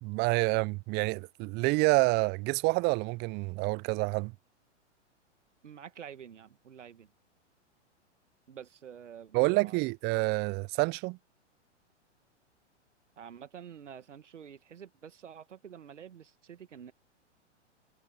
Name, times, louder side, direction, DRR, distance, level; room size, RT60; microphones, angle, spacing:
voice 1, 0.0-4.3 9.3-11.2, right 26 dB, 30° right, 0.6 m, -28 dB
voice 2, 5.6-7.1 8.5-9.8 13.2-16.9, right 8 dB, 80° right, 1.8 m, -48 dB
hypercardioid pair, 110°, 36 cm